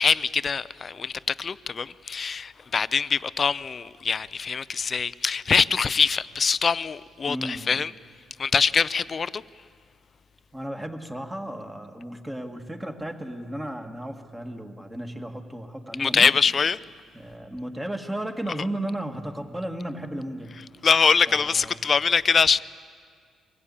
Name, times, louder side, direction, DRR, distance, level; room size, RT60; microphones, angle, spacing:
voice 1, 0.0-7.9 8.4-9.4 16.0-16.8 20.8-22.6, left 5 dB, 40° left, 0.4 m, -23 dB
voice 2, 7.3-7.8 10.5-16.3 17.1-20.6 21.3-21.8, right 1 dB, 10° right, 1.7 m, -34 dB
23.0 x 16.5 x 8.7 m
cardioid pair, 90°, 0 cm